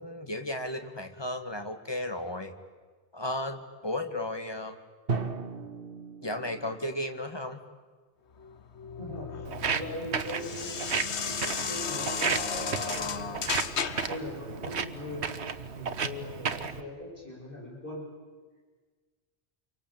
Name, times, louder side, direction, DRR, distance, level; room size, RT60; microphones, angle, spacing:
voice 1, 0.0-2.6 3.1-4.8 6.2-7.6, left 1 dB, 25° left, 6 dB, 1.9 m, -34 dB
Drum, 5.1-7.0, right 4 dB, 60° right, 1.6 m, -35 dB
sound 1, 8.4-14.2, left 6 dB, 85° left, 1.4 m, -34 dB
voice 2, 9.0-13.6 14.0-15.3 15.8-18.0, left 1 dB, 55° left, -2 dB, 7.3 m, -41 dB
Walk footsteps, 9.4-16.8, right 6 dB, 80° right, 1.4 m, -34 dB
28.0 x 24.0 x 8.7 m, 1.4 s
omnidirectional pair, 1.1 m